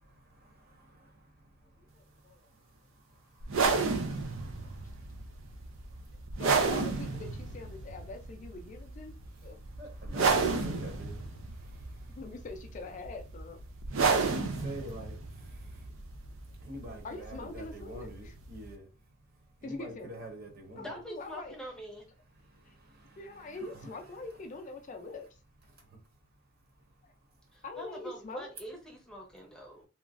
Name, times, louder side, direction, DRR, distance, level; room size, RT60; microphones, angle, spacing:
voice 1, 0.3-1.1 3.6-4.8 9.8-11.3 14.3-15.2 15.5-15.6 16.6-18.9 19.6-20.9 22.8-23.2 23.8-23.9, equal, 50° right, 0.8 m, -46 dB
voice 2, 1.8-2.5 6.4-9.1 9.4-9.6 12.1-13.6 17.0-18.4 19.6-20.1 20.8-21.5 22.7-22.8 23.2-25.3 27.0-27.1 27.6-28.5, left 3 dB, 40° left, 0.4 m, -44 dB
sound 1, 3.4-18.7, right 4 dB, 75° right, 0.5 m, -32 dB
voice 3, 20.7-22.1 27.5-29.9, equal, 5° left, 0.7 m, -44 dB
2.9 x 2.4 x 2.4 m
head